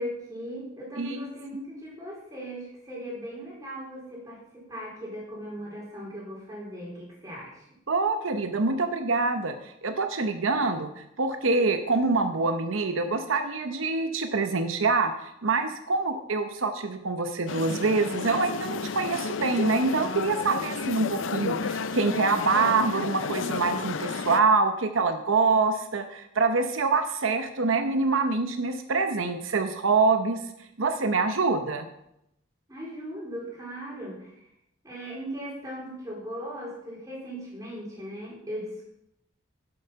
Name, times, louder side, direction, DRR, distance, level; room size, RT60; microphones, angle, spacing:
voice 1, 0.0-7.7 32.7-34.5 34.8-38.9, equal, 15° right, -4 dB, 4.1 m, -38 dB
voice 2, 7.9-15.1 15.4-30.4 30.8-31.9, right 3 dB, 85° right, 8 dB, 0.8 m, -25 dB
sound 1, 17.5-24.4, left 5 dB, 75° left, 0.5 m, -32 dB
11.0 x 7.8 x 5.7 m, 0.80 s
head